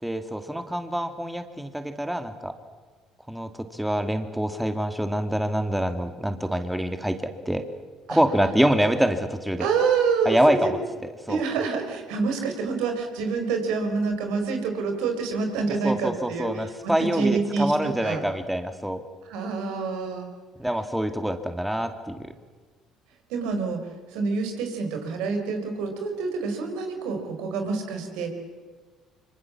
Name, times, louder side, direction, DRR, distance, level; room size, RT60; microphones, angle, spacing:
voice 1, 0.0-2.5 3.3-7.2 7.5-7.6 8.1-9.7 10.3-10.8 11.3-11.4 15.8-19.0 20.6-22.2, right 1 dB, 5° right, 8 dB, 2.3 m, -25 dB
voice 2, 9.6-10.7 11.3-18.2 19.3-20.3 23.3-23.8 24.1-28.3, right 4 dB, 75° right, 5 dB, 4.7 m, -27 dB
25.5 x 25.0 x 7.4 m, 1.4 s
hypercardioid pair, 60°, 0 cm